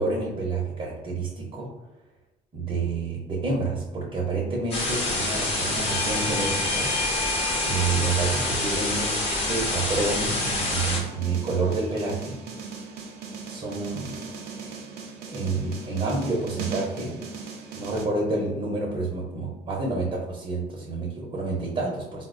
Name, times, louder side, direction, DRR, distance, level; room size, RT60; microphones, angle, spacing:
voice 1, 0.0-1.7 2.5-7.1 7.6-9.2 9.5-12.4 13.5-14.1 15.3-17.2 17.7-22.2, right 3 dB, 30° right, -2 dB, 0.6 m, -28 dB
sound 1, 4.7-11.0, left 2 dB, 35° left, 0.9 m, -27 dB
Bell / Doorbell, 5.9-11.0, left 3 dB, 70° left, 0.6 m, -36 dB
sound 2, 10.0-18.1, right 5 dB, 75° right, 0.5 m, -38 dB
3.9 x 2.1 x 2.4 m, 0.96 s
cardioid pair, 110°, 17 cm